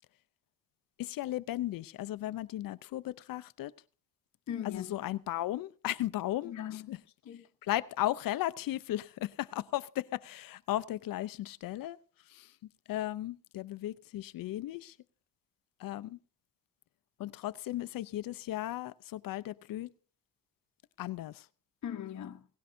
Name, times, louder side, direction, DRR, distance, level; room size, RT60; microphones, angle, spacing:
voice 1, 1.0-3.7 4.6-7.0 7.6-12.0 12.3-12.5 12.9-14.9 15.8-16.2 17.2-19.9 21.0-21.5, left 14 dB, 85° left, 0.6 m, -36 dB
voice 2, 4.5-5.0 6.4-7.4 21.8-22.5, left 9 dB, 60° left, 1.0 m, -40 dB
18.0 x 16.5 x 2.7 m
cardioid pair, 115°, 33 cm